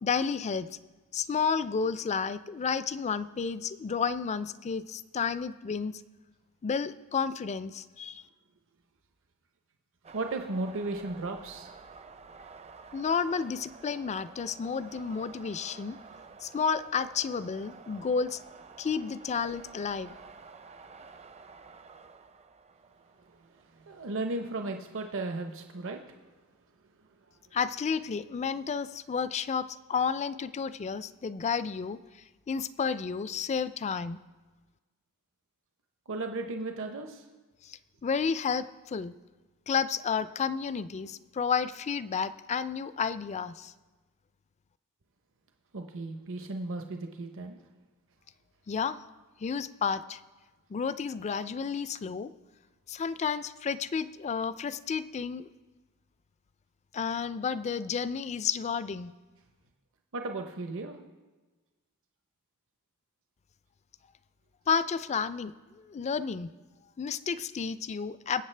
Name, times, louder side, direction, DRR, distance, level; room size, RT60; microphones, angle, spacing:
voice 1, 0.0-0.7 1.1-6.0 6.6-8.2 12.9-16.0 16.4-18.4 18.8-20.1 27.5-32.0 32.5-34.2 37.6-39.1 39.7-43.7 48.7-49.0 49.4-50.2 50.7-52.3 52.9-55.5 56.9-59.1 64.7-66.5 67.0-68.4, left 6 dB, 30° left, 15 dB, 0.3 m, -31 dB
sound 1, 10.0-24.9, right 4 dB, 30° right, 0.5 m, -51 dB
voice 2, 10.1-11.7 23.2-26.2 27.0-27.3 36.1-37.3 45.7-47.6 60.1-61.0, right 2 dB, 60° right, 4 dB, 0.8 m, -36 dB
22.5 x 8.0 x 3.3 m, 1.3 s
head